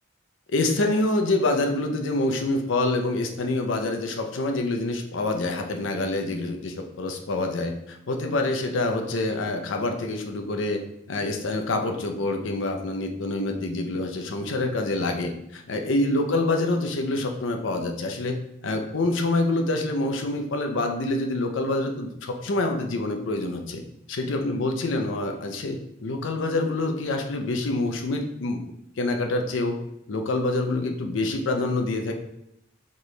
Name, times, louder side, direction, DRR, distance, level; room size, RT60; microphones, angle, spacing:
voice 1, 0.5-10.8 11.1-18.4 18.6-23.8 24.1-28.6 29.0-29.8 30.1-32.1, left 2 dB, 85° left, 4 dB, 0.5 m, -26 dB
4.2 x 3.1 x 3.2 m, 0.79 s
head